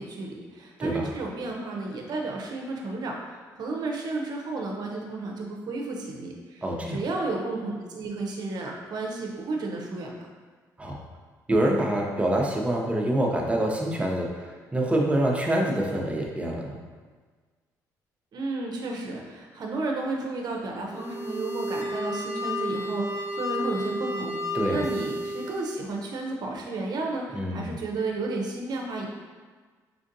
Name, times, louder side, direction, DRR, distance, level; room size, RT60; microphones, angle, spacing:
voice 1, 0.0-10.2 18.3-29.1, right 3 dB, 55° right, 0 dB, 0.6 m, -32 dB
voice 2, 6.6-7.0 10.8-11.0 11.5-16.8 24.5-24.8 27.3-27.7, right 1 dB, 15° right, -1 dB, 0.7 m, -26 dB
sound 1, 20.9-25.8, equal, 45° left, 0.8 m, -31 dB
4.5 x 2.5 x 2.6 m, 1.5 s
supercardioid pair, 60°, 8 cm